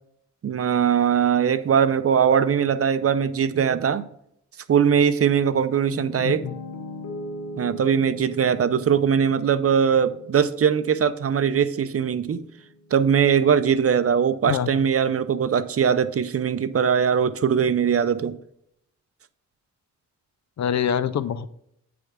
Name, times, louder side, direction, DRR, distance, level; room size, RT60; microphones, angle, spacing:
voice 1, 0.4-4.0 4.7-6.5 7.6-12.4 12.9-18.4, right 7 dB, 50° right, 0.6 m, -21 dB
Piano, 5.6-13.7, left 1 dB, 75° left, 1.3 m, -40 dB
voice 2, 6.2-6.5 14.5-14.8 20.6-21.5, left 8 dB, 60° left, 0.5 m, -25 dB
9.0 x 3.5 x 4.8 m
cardioid pair, 70°, 31 cm